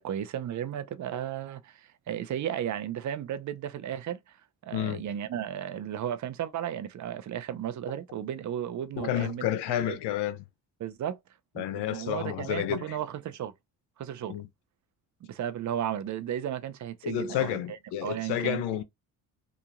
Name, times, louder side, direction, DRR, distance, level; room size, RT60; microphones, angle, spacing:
voice 1, 0.0-4.2 4.6-10.0 10.8-11.2 11.5-13.5 14.0-14.4 15.2-18.6, right 10 dB, 45° right, 0.6 m, -34 dB
voice 2, 4.7-5.0 9.0-10.4 11.6-13.0 14.3-14.5 17.0-18.8, left 11 dB, 75° left, 0.7 m, -30 dB
2.9 x 2.4 x 2.4 m
supercardioid pair, 65°, 41 cm